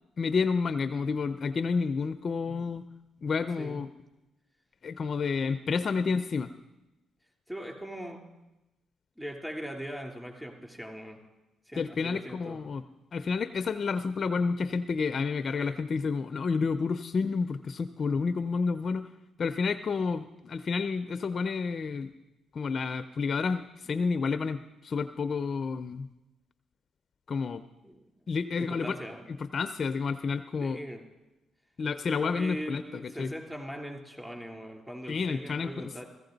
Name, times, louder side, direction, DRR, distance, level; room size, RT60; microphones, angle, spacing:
voice 1, 0.2-2.9 3.2-3.9 4.8-6.5 11.8-12.8 13.1-19.1 19.4-22.1 22.5-26.1 27.3-27.6 28.3-29.0 29.5-30.8 31.8-33.3 35.1-35.7, left 5 dB, 45° left, 11 dB, 0.5 m, -30 dB
voice 2, 7.5-8.2 9.2-11.2 11.7-12.6 27.8-28.2 28.6-29.2 30.6-31.0 32.2-36.1, equal, 5° right, 1 dB, 3.1 m, -40 dB
15.5 x 14.5 x 4.0 m, 0.98 s
cardioid pair, 90°, 0 cm